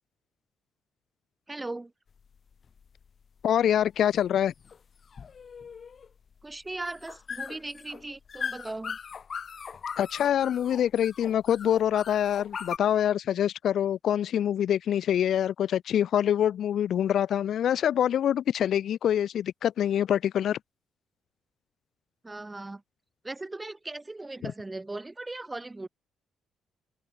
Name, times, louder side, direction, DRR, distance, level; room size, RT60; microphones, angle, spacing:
voice 1, 1.5-1.9 6.4-9.0 22.2-22.8 23.2-25.9, right 2 dB, 15° right, 2.6 m, -38 dB
sound 1, 2.1-12.8, left 6 dB, 45° left, 3.9 m, -40 dB
voice 2, 3.4-4.5 10.0-20.6 24.4-24.5, left 10 dB, 65° left, 0.9 m, -25 dB
cardioid pair, 90°, 0 cm